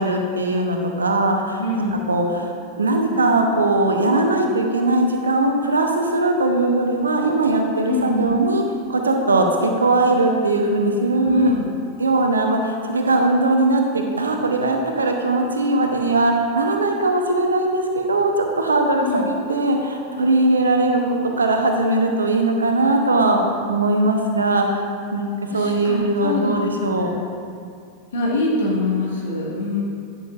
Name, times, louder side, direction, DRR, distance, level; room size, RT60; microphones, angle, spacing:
voice 1, 0.0-1.6 2.1-8.6 8.9-11.5 12.0-23.4 23.7-24.8 25.1-25.3 25.5-27.1, right 2 dB, 75° right, 3 dB, 0.8 m, -20 dB
voice 2, 1.6-2.0 7.9-8.3 11.2-11.7 19.0-19.3 25.5-26.5 26.8-27.1 28.1-29.8, left 2 dB, 65° left, -4 dB, 1.5 m, -24 dB
10.5 x 6.5 x 2.5 m, 2.3 s
figure-of-eight pair, 90°, 0 cm